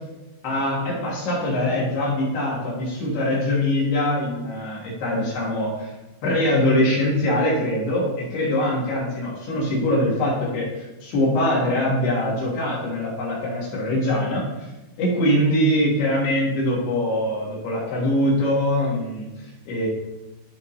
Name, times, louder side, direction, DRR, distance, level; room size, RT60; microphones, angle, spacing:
voice 1, 0.4-5.9 6.2-14.4 15.0-19.3 19.7-19.9, left 1 dB, 65° left, -5 dB, 3.4 m, -23 dB
14.5 x 5.2 x 2.8 m, 1.0 s
omnidirectional pair, 5.7 m